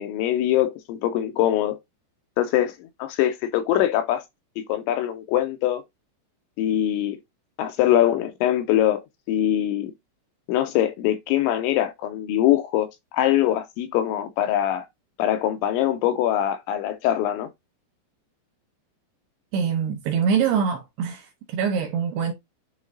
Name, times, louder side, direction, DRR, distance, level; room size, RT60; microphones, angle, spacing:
voice 1, 0.0-1.8 2.4-2.7 3.0-4.2 4.7-5.8 6.6-7.2 7.6-9.0 9.3-9.9 10.5-12.9 13.1-14.9 15.2-17.5, left 12 dB, 80° left, 2.8 m, -23 dB
voice 2, 19.5-22.3, right 7 dB, 75° right, 2.5 m, -24 dB
10.5 x 3.7 x 2.5 m
omnidirectional pair, 5.6 m